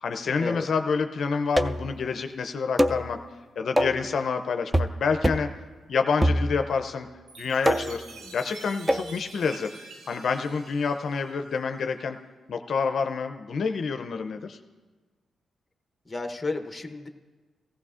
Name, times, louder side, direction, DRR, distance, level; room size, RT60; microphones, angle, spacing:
voice 1, 0.0-3.2 3.6-5.5 5.9-7.1 7.4-8.0 8.3-9.7 10.1-12.2 12.5-14.6, left 5 dB, 65° left, 6 dB, 0.5 m, -28 dB
sound 1, 1.6-1.9 2.8-3.1 3.8-4.1 4.7-5.0 5.2-5.5 6.2-6.8 7.7-8.1 8.9-9.1, equal, 10° right, 0.4 m, -24 dB
Chime, 7.3-11.9, right 3 dB, 80° right, 1.0 m, -47 dB
voice 2, 7.9-8.3 16.1-17.1, left 3 dB, 20° left, 4 dB, 0.8 m, -33 dB
15.0 x 15.0 x 2.4 m, 1.4 s
cardioid pair, 85°, 0 cm